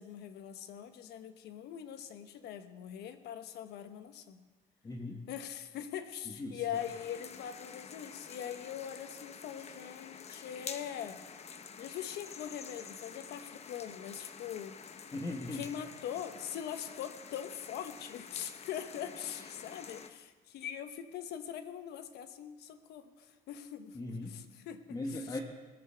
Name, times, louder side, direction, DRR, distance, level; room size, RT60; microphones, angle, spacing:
voice 1, 0.0-4.4 5.3-11.3 11.8-14.8 15.5-25.4, left 9 dB, 75° left, 9 dB, 1.1 m, -42 dB
voice 2, 4.8-5.2 6.3-6.6 15.1-15.6 23.9-24.3 24.9-25.4, left 2 dB, 20° left, 2 dB, 1.3 m, -38 dB
sound 1, 6.7-20.1, left 6 dB, 40° left, 0.9 m, -49 dB
20.5 x 7.0 x 6.9 m, 1.3 s
cardioid pair, 110°, 17 cm